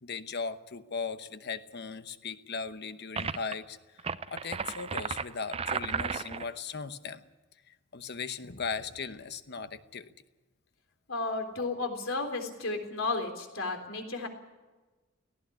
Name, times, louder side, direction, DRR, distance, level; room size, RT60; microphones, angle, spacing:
voice 1, 0.0-7.2 7.7-10.1, left 5 dB, 55° left, 11 dB, 1.0 m, -38 dB
sound 1, 3.2-3.5 4.0-6.5, right 5 dB, 30° right, 0.6 m, -34 dB
voice 2, 11.1-14.3, left 3 dB, 75° left, 4 dB, 3.7 m, -33 dB
18.0 x 16.0 x 10.0 m, 1.2 s
head